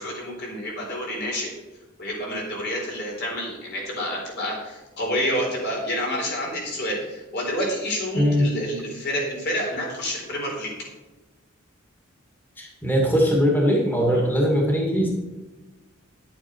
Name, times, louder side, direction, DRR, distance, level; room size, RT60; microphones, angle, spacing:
voice 1, 0.0-1.5 2.0-10.7 14.1-14.3, equal, 55° left, -1 dB, 3.9 m, -28 dB
voice 2, 8.1-8.5 12.6-15.1, equal, 10° left, -2 dB, 2.2 m, -20 dB
10.5 x 8.8 x 4.5 m, 1.1 s
head